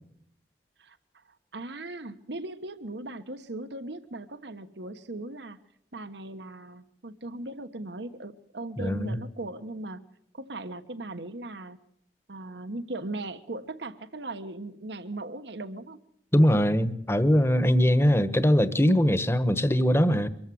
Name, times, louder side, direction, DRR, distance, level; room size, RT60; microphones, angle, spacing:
voice 1, 0.8-5.6 5.9-10.0 10.3-11.8 12.3-16.0, right 2 dB, 75° right, 10 dB, 1.3 m, -38 dB
voice 2, 8.8-9.2 16.3-20.3, equal, 15° left, 14 dB, 1.2 m, -21 dB
24.5 x 15.0 x 7.8 m, 0.70 s
head